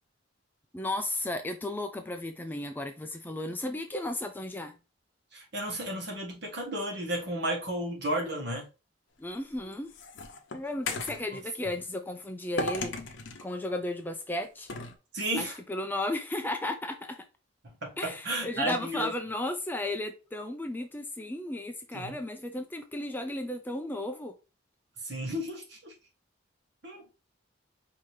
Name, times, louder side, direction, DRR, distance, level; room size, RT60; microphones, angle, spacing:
voice 1, 0.7-4.7 9.2-9.9 10.5-12.9 13.4-14.7 15.4-17.3 18.0-24.3, left 1 dB, 10° left, 0.3 m, -34 dB
voice 2, 5.3-8.6 15.1-15.6 17.8-19.1 21.9-22.1 25.0-25.9 26.8-27.0, right 1 dB, 55° right, 1.5 m, -33 dB
sound 1, 9.3-11.3 12.6-13.5 14.7-15.0, left 3 dB, 65° left, 0.7 m, -35 dB
5.0 x 2.8 x 3.1 m
head